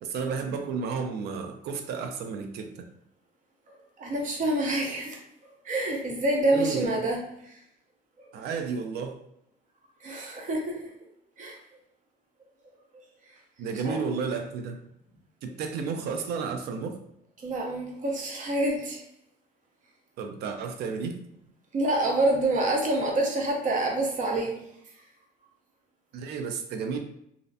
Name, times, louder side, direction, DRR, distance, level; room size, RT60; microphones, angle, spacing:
voice 1, 0.0-2.9 6.5-6.9 8.3-9.2 13.6-14.8 15.4-17.0 20.2-21.2 26.1-27.0, right 5 dB, 75° right, 5 dB, 0.4 m, -32 dB
voice 2, 3.7-5.2 5.6-7.6 8.2-8.3 10.0-10.9 11.4-11.6 12.9-13.4 13.8-14.0 17.4-19.0 21.7-25.0, right 1 dB, 50° right, 0 dB, 0.7 m, -28 dB
2.5 x 2.0 x 2.6 m, 0.75 s
cardioid pair, 110°, 17 cm